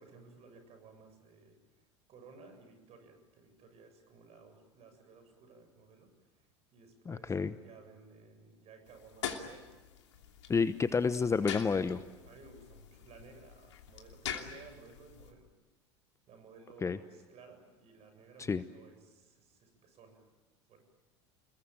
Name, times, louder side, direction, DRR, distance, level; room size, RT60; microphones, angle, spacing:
voice 1, 0.0-9.7 12.2-15.5 16.3-20.3 20.7-20.8, right 4 dB, 45° right, 7 dB, 7.6 m, -57 dB
voice 2, 7.1-7.5 10.5-12.0 16.8-17.0 18.5-18.6, left 5 dB, 20° left, 13 dB, 1.0 m, -29 dB
sound 1, 8.9-15.3, left 8 dB, 75° left, 2.9 m, -44 dB
28.5 x 21.5 x 9.0 m, 1.2 s
hypercardioid pair, 80°, 15 cm